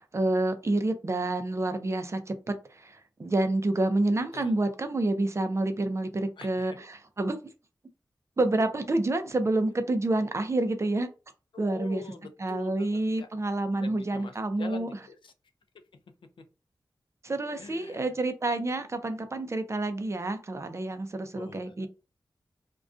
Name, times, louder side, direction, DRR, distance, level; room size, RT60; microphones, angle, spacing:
voice 1, 0.0-7.4 8.4-11.1 11.6-12.0 12.4-14.9 17.2-21.9, right 2 dB, 35° right, 8 dB, 0.4 m, -28 dB
voice 2, 6.4-6.9 11.5-13.3 13.8-15.3 17.6-18.1 21.3-21.9, left 4 dB, 85° left, 8 dB, 0.4 m, -45 dB
2.4 x 2.2 x 2.4 m, 0.32 s
wide cardioid pair, 90°, 8 cm